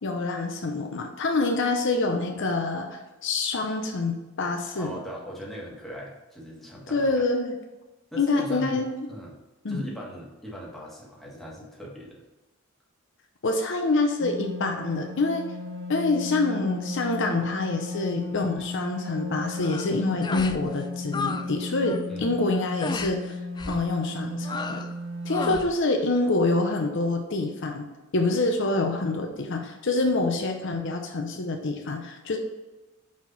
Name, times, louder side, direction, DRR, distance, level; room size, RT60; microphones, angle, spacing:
voice 1, 0.0-4.9 6.9-7.5 8.2-9.1 9.6-9.8 13.4-15.5 15.9-23.4 23.7-24.8 25.2-32.4, left 3 dB, 60° left, 3 dB, 0.7 m, -26 dB
voice 2, 4.7-7.3 8.1-9.4 9.7-12.2 22.1-22.4, equal, ahead, -4 dB, 1.5 m, -39 dB
sound 1, 14.2-25.6, left 2 dB, 85° right, 0.7 m, -35 dB
sound 2, 19.5-19.9 20.2-20.6 20.9-21.5 21.7-22.1 22.8-23.1 23.6-23.9 24.4-24.9 25.3-25.7, left 4 dB, 20° left, 0.4 m, -33 dB
5.9 x 4.7 x 4.1 m, 1.1 s
head